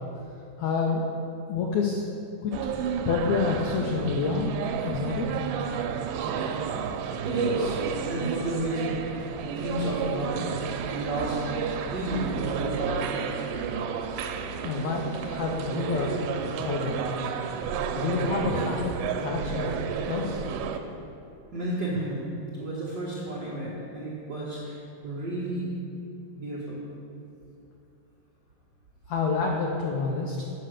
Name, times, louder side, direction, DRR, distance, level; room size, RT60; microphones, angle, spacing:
voice 1, 0.6-1.0 1.5-2.0 2.4-2.5 3.0-5.3 14.6-16.2 16.5-17.0 17.9-20.4 29.1-30.4, left 4 dB, 85° left, 0 dB, 1.5 m, -28 dB
sound 1, 2.5-20.8, right 6 dB, 85° right, 2.2 m, -31 dB
voice 2, 7.2-9.0 9.4-13.2 21.5-22.2 22.6-25.7 26.3-26.8, right 1 dB, 50° right, -8 dB, 1.3 m, -32 dB
8.1 x 5.5 x 6.4 m, 2.6 s
omnidirectional pair, 3.9 m